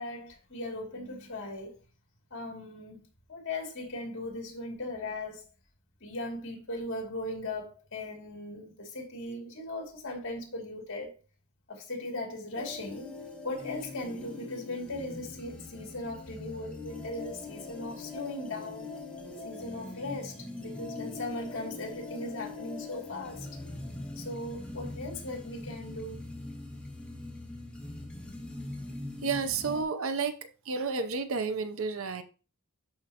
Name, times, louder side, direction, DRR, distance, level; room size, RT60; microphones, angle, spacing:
voice 1, 0.0-1.7 2.3-3.0 3.3-5.4 6.0-11.1 11.7-13.1 13.4-18.9 19.4-23.5 24.2-26.3, left 2 dB, 55° left, 2.5 m, -38 dB
sound 1, 12.5-29.8, left 2 dB, 5° left, 1.1 m, -42 dB
voice 2, 29.2-30.4 30.7-32.2, right 5 dB, 65° right, 0.6 m, -31 dB
11.5 x 4.3 x 2.9 m
head